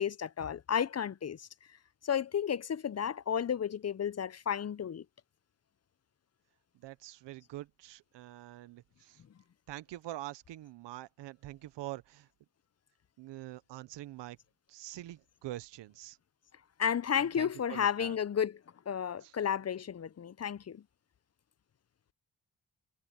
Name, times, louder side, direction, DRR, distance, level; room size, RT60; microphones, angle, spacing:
voice 1, 0.0-1.5 2.0-5.0 16.8-18.6 18.9-20.8, left 8 dB, 40° left, 0.7 m, -32 dB
voice 2, 6.8-9.2 9.7-12.3 13.2-14.4 14.7-16.2 17.2-18.2 19.2-19.3, right 15 dB, 90° right, 0.9 m, -45 dB
supercardioid pair, 45°, 41 cm